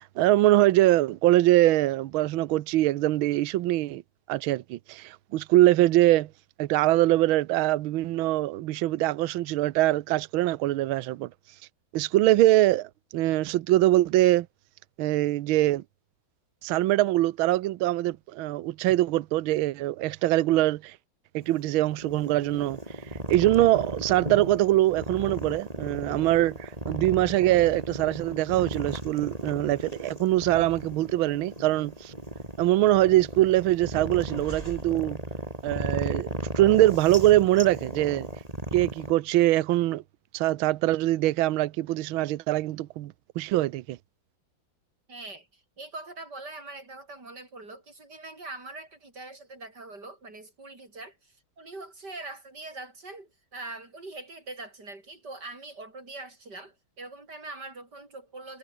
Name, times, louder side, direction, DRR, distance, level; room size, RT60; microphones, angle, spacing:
voice 1, 0.2-4.0 4.3-6.3 6.6-11.3 11.9-14.5 15.0-15.8 16.6-20.9 21.3-22.8 23.3-32.1 32.6-35.2 35.6-36.3 36.5-38.3 38.7-40.0 40.3-44.0, right 15 dB, 75° right, 1.5 m, -23 dB
sound 1, 21.4-39.1, right 1 dB, 15° right, 6.3 m, -35 dB
voice 2, 45.1-58.6, right 2 dB, 50° right, 6.3 m, -43 dB
omnidirectional pair, 2.3 m